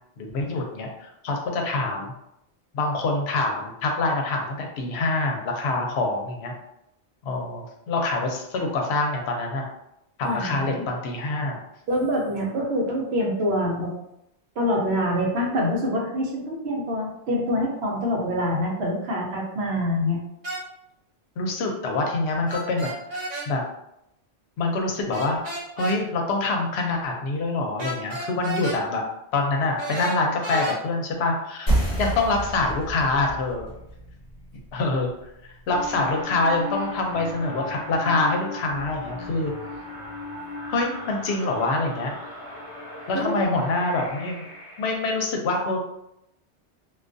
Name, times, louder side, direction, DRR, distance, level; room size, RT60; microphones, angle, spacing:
voice 1, 0.2-2.1 2.7-6.5 7.2-9.7 10.2-11.6 21.4-22.9 23.5-23.6 24.6-25.4 25.8-29.0 29.3-31.7 32.0-33.7 34.7-35.1 35.7-39.5 40.7-42.1 43.1-44.4 44.8-45.8, left 2 dB, 70° left, 1 dB, 0.8 m, -25 dB
voice 2, 10.2-10.9 11.9-13.9 14.6-20.2 43.1-43.4, equal, 70° right, -1 dB, 0.8 m, -25 dB
sound 1, 20.4-20.6 22.5-23.5 25.1-26.0 27.8-28.8 29.8-30.8, right 1 dB, 50° right, 0.6 m, -32 dB
sound 2, 31.7-36.8, right 1 dB, 40° left, 0.7 m, -30 dB
sound 3, 35.7-45.0, left 2 dB, 15° right, 1.0 m, -37 dB
2.3 x 2.3 x 2.5 m, 0.82 s
omnidirectional pair, 1.1 m